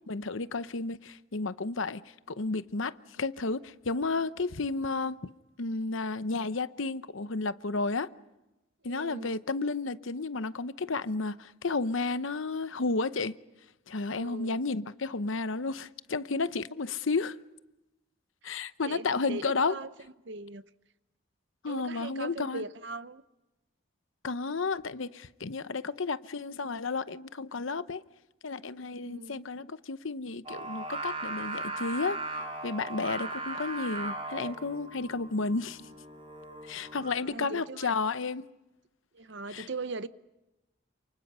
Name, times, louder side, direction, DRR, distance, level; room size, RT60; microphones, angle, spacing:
voice 1, 0.1-2.0 2.3-5.2 5.6-8.1 8.8-13.3 13.9-17.4 18.4-19.8 21.6-22.6 24.2-28.0 28.4-32.2 32.6-35.8 36.6-38.5 39.5-39.7, left 3 dB, 70° left, 0.8 m, -32 dB
voice 2, 8.8-9.4 14.1-14.6 18.8-19.9 20.2-20.6 21.7-23.2 28.9-29.4 37.2-38.0 39.1-40.1, right 3 dB, 60° right, 0.8 m, -40 dB
Singing, 30.5-37.2, right 2 dB, 25° right, 4.8 m, -38 dB
29.5 x 28.0 x 5.5 m
head